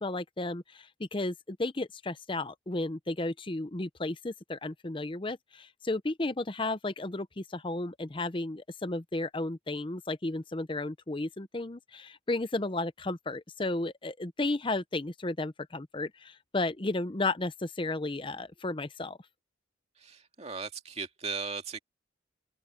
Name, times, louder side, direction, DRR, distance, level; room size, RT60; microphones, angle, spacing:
voice 1, 0.0-19.2, left 2 dB, 25° left, 0.7 m, -33 dB
voice 2, 20.0-21.8, right 5 dB, 35° right, 2.4 m, -37 dB
open air
head